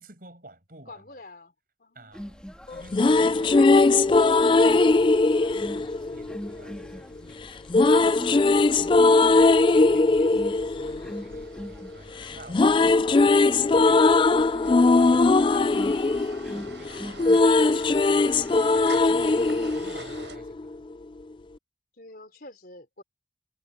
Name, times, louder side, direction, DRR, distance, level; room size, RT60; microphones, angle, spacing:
voice 1, 0.0-1.2 1.9-8.3 8.7-14.4 14.7-17.4 17.9-20.8, right 1 dB, 50° right, 7.2 m, -51 dB
voice 2, 0.9-1.5 1.8-2.9 16.9-18.0 22.0-23.0, left 2 dB, 55° left, 4.1 m, -49 dB
sound 1, 2.1-19.9, equal, 5° left, 2.6 m, -43 dB
sound 2, 2.7-6.8 7.7-11.9 12.2-20.7, left 3 dB, 25° left, 0.3 m, -20 dB
sound 3, 9.4-20.4, right 4 dB, 80° right, 7.5 m, -48 dB
head